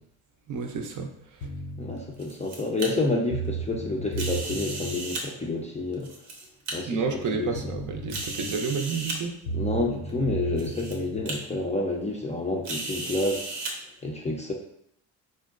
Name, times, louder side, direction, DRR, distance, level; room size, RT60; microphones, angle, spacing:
voice 1, 0.5-1.5 6.8-9.4, right 5 dB, 45° right, 3 dB, 0.6 m, -30 dB
sound 1, 1.4-1.9 2.9-3.0 3.3-5.0 7.2-7.3 7.5-8.2 9.4-11.2, right 3 dB, 65° left, 0.7 m, -33 dB
voice 2, 1.8-6.1 6.7-6.9 7.3-7.5 9.5-13.7 14.0-14.5, left 2 dB, 15° left, -1 dB, 0.5 m, -29 dB
sound 2, 2.0-2.9 4.1-5.2 5.9-6.7 7.4-7.5 8.1-9.2 10.1-10.2 10.6-10.9 11.3-11.4 12.6-13.7, right 2 dB, 85° right, 0.7 m, -35 dB
3.7 x 2.1 x 2.4 m, 0.72 s
hypercardioid pair, 60°, 43 cm